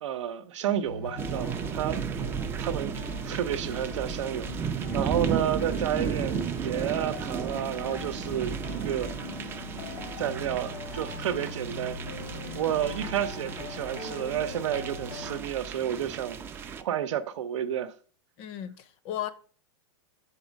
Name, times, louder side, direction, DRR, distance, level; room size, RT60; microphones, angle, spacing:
voice 1, 0.0-2.0 2.6-9.1 10.2-12.0 12.5-16.4 16.8-17.9, right 10 dB, 90° right, 0.7 m, -31 dB
sound 1, 0.8-15.4, left 4 dB, 80° left, 1.3 m, -41 dB
sound 2, 1.2-16.8, right 7 dB, 15° right, 0.3 m, -34 dB
voice 2, 18.4-19.3, left 11 dB, 40° left, 0.6 m, -35 dB
7.1 x 4.3 x 5.1 m
supercardioid pair, 150°, 15 cm